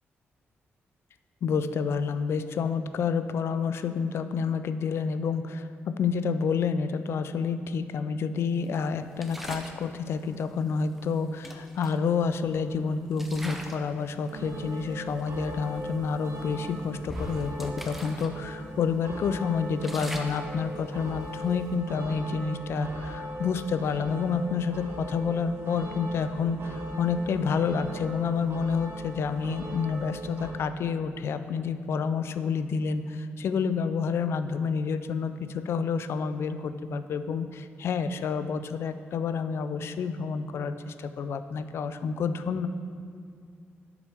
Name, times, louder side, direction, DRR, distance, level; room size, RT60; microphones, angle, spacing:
voice 1, 1.4-42.7, left 5 dB, 65° left, 11 dB, 0.3 m, -29 dB
sound 1, 9.2-9.8 11.0-11.1 11.4-12.6 13.1-13.9 14.3-14.5 15.2-15.3 15.7-15.9 16.4-18.3 18.7-18.8 19.2-21.7, equal, 5° right, 0.5 m, -41 dB
sound 2, 14.3-30.5, right 1 dB, 60° right, 0.8 m, -40 dB
7.5 x 6.0 x 3.4 m, 2.3 s
cardioid pair, 120°, 5 cm